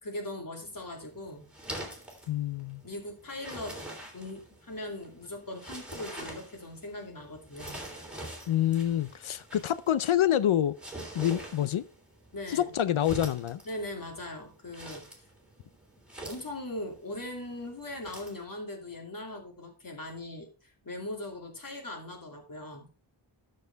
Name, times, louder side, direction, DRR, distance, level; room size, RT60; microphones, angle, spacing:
voice 1, 0.0-1.5 2.8-3.8 4.1-7.9 12.3-12.7 13.6-15.1 16.2-22.9, left 1 dB, 40° left, 2.7 m, -40 dB
sound 1, 0.6-18.4, right 1 dB, ahead, 3.4 m, -46 dB
voice 2, 2.3-2.8 8.5-10.8 11.1-11.8 12.5-13.6, left 11 dB, 75° left, 0.6 m, -27 dB
12.0 x 6.6 x 3.4 m
wide cardioid pair, 115°, 49 cm